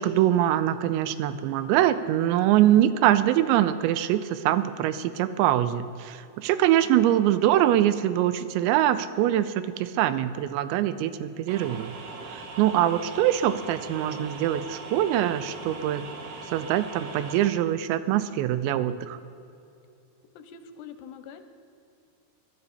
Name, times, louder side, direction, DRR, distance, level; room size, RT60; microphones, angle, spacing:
voice 1, 0.0-11.9 12.3-16.1 16.5-19.2, right 12 dB, 85° right, 13 dB, 2.9 m, -23 dB
sound 1, 11.5-17.5, right 4 dB, 65° right, 2.4 m, -40 dB
voice 2, 20.3-21.4, left 7 dB, 85° left, 9 dB, 2.8 m, -44 dB
21.0 x 12.0 x 4.2 m, 2.6 s
omnidirectional pair, 5.1 m